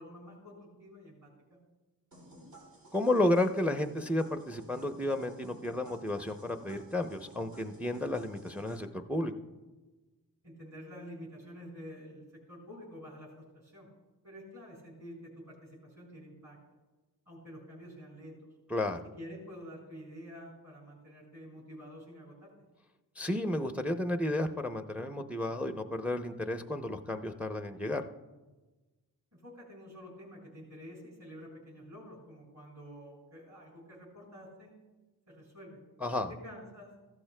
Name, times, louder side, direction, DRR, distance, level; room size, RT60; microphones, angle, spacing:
voice 1, 0.0-1.6 10.4-13.9 14.2-16.6 17.3-18.4 19.2-22.5 29.3-34.7 35.3-35.8 36.4-36.9, equal, 40° right, -4 dB, 3.7 m, -49 dB
sound 1, 2.1-8.8, right 1 dB, 90° right, 3.7 m, -54 dB
voice 2, 2.9-9.3 18.7-19.0 23.2-28.0 36.0-36.3, left 1 dB, 5° right, 7 dB, 0.6 m, -32 dB
14.5 x 12.0 x 2.2 m, 1.2 s
wide cardioid pair, 80°, 41 cm